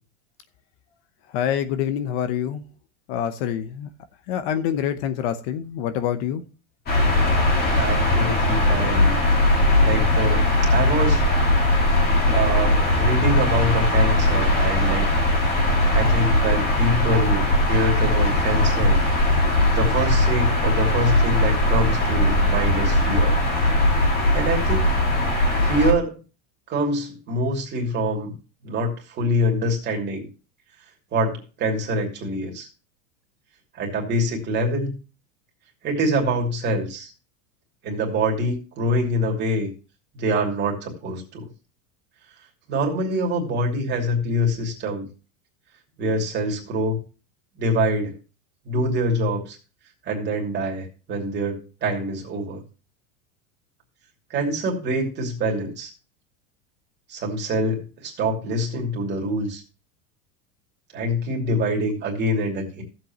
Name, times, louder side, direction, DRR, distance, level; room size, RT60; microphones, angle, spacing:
voice 1, 1.3-2.6 3.1-3.9 4.3-6.4, left 9 dB, 50° left, 0.9 m, -26 dB
sound 1, 6.9-25.9, left 1 dB, 25° left, 2.1 m, -19 dB
voice 2, 7.7-9.2 9.8-11.2 12.1-15.0 15.9-19.0 19.7-23.4 24.3-24.9 25.6-26.2 26.7-28.3 28.6-30.3 31.1-32.7 33.7-35.0 35.8-37.1 37.8-39.7 40.1-41.5 42.7-45.1 46.0-47.0 47.6-48.1 48.6-49.6 50.0-52.6 54.3-55.9 57.1-59.6 60.9-62.8, equal, 25° right, 2.8 m, -25 dB
15.0 x 7.8 x 3.0 m
supercardioid pair, 170°, 41 cm